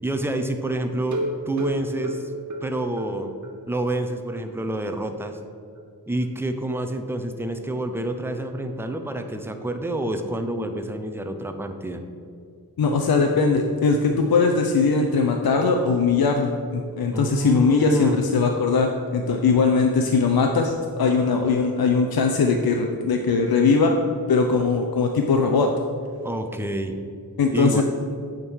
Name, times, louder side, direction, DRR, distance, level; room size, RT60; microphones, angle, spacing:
voice 1, 0.0-2.3 2.6-3.3 3.7-5.4 6.1-12.0 17.1-18.2 26.2-27.1 27.5-27.8, right 1 dB, 5° right, 6 dB, 0.6 m, -28 dB
sound 1, 1.1-3.6 3.9-4.0 4.4-4.5 4.8-4.9, right 1 dB, 50° right, 1.2 m, -31 dB
voice 2, 12.8-23.9 24.3-25.7 27.4-27.8, left 4 dB, 70° left, 3 dB, 0.6 m, -20 dB
8.5 x 3.7 x 6.2 m, 2.3 s
wide cardioid pair, 70°, 37 cm